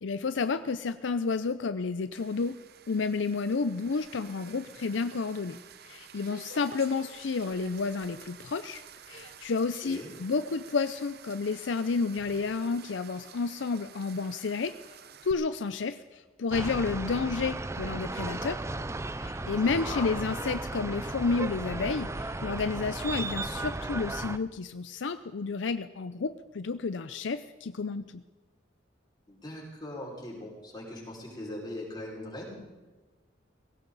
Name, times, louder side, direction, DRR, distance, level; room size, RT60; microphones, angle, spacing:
voice 1, 0.0-2.6 2.9-5.6 5.9-8.8 9.1-14.8 15.2-18.6 19.2-28.2, left 4 dB, 75° left, 11 dB, 0.5 m, -31 dB
sound 1, 2.1-15.3, right 7 dB, 55° right, 0.8 m, -50 dB
sound 2, 16.5-24.4, right 2 dB, 15° right, 0.5 m, -35 dB
voice 2, 19.6-20.1 29.3-32.5, left 1 dB, 25° left, -4 dB, 5.4 m, -40 dB
19.0 x 17.0 x 4.1 m, 1.3 s
head